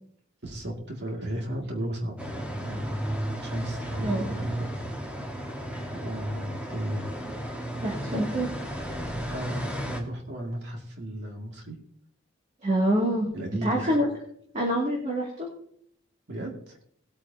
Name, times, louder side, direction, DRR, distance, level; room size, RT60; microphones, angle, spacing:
voice 1, 0.4-2.3 2.6-3.0 3.4-4.7 5.9-7.1 9.3-11.8 13.3-14.0 16.3-16.8, right 1 dB, 55° right, 1 dB, 2.2 m, -34 dB
sound 1, 2.2-10.0, equal, 5° right, 1.4 m, -34 dB
voice 2, 7.8-8.5 12.6-13.3 13.6-14.1 14.5-15.5, right 1 dB, 35° right, -3 dB, 2.4 m, -26 dB
19.5 x 8.7 x 2.8 m, 0.66 s
head